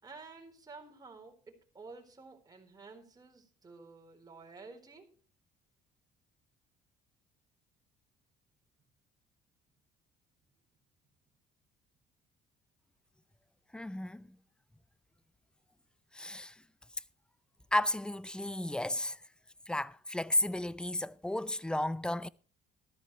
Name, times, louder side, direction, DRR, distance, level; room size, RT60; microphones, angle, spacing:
voice 1, 0.0-5.1, right 4 dB, 20° right, 4.3 m, -52 dB
voice 2, 13.7-14.3 16.1-16.5 17.7-19.2 19.7-22.3, left 1 dB, 5° left, 0.6 m, -33 dB
13.5 x 13.5 x 3.2 m
cardioid pair, 110°, 17 cm